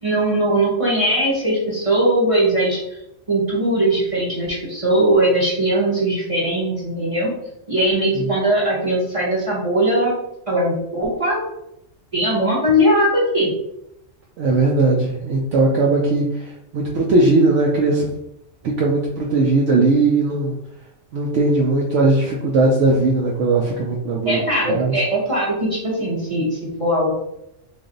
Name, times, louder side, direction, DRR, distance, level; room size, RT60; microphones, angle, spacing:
voice 1, 0.0-2.8 3.3-7.3 7.7-10.1 10.5-11.4 12.1-13.5 24.2-27.1, right 1 dB, 30° right, -5 dB, 0.9 m, -19 dB
voice 2, 14.4-18.1 18.6-20.5 21.1-24.4 24.7-24.9, right 3 dB, 70° right, -2 dB, 0.9 m, -18 dB
3.3 x 2.5 x 3.8 m, 0.82 s
omnidirectional pair, 1.3 m